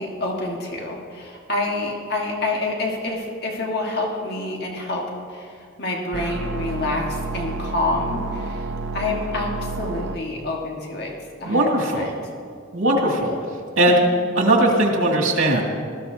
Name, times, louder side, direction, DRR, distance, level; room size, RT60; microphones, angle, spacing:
voice 1, 0.0-11.1 11.4-12.1 14.1-14.3, left 2 dB, 50° left, -1 dB, 1.5 m, -28 dB
sound 1, 6.1-10.1, right 2 dB, 65° right, 0.6 m, -30 dB
voice 2, 11.5-12.1 12.7-13.3 13.8-14.0 14.4-15.6, right 1 dB, 90° right, -2 dB, 2.3 m, -18 dB
20.0 x 14.0 x 2.7 m, 2.3 s
head